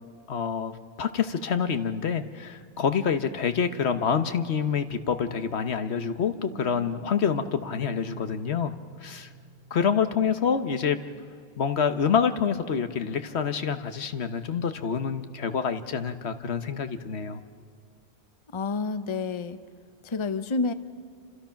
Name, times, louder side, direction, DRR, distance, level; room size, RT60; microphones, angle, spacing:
voice 1, 0.3-8.7 9.0-9.3 9.7-11.0 11.6-17.4, left 7 dB, 75° left, 9 dB, 1.3 m, -27 dB
sound 1, 6.1-12.0, right 5 dB, 50° right, 2.0 m, -48 dB
voice 2, 18.5-19.6 20.0-20.7, left 4 dB, 30° left, 11 dB, 0.7 m, -29 dB
28.5 x 26.5 x 5.8 m, 2.1 s
omnidirectional pair, 1.1 m